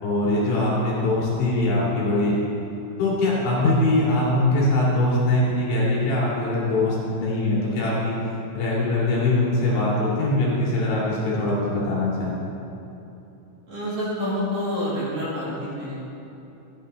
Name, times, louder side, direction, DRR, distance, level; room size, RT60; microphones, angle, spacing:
voice 1, 0.0-2.3 3.0-8.2 8.5-12.4, left 2 dB, 75° left, -6 dB, 4.9 m, -22 dB
voice 2, 13.7-15.9, left 1 dB, 45° right, -10 dB, 3.4 m, -27 dB
13.5 x 10.5 x 4.0 m, 2.9 s
omnidirectional pair, 5.4 m